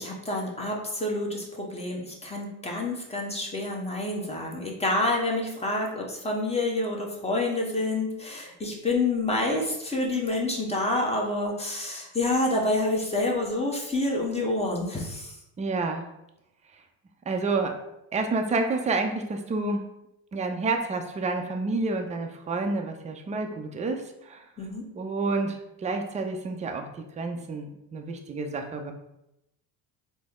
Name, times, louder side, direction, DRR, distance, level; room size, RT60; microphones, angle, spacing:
voice 1, 0.0-15.3 24.6-24.8, left 2 dB, 15° left, -1 dB, 0.9 m, -28 dB
voice 2, 15.6-16.1 16.7-16.8 17.3-17.8 18.1-19.8 20.3-24.4 24.9-26.9 27.2-28.9, right 3 dB, 20° right, 4 dB, 0.4 m, -29 dB
4.0 x 2.0 x 3.6 m, 0.85 s
supercardioid pair, 90°, 42 cm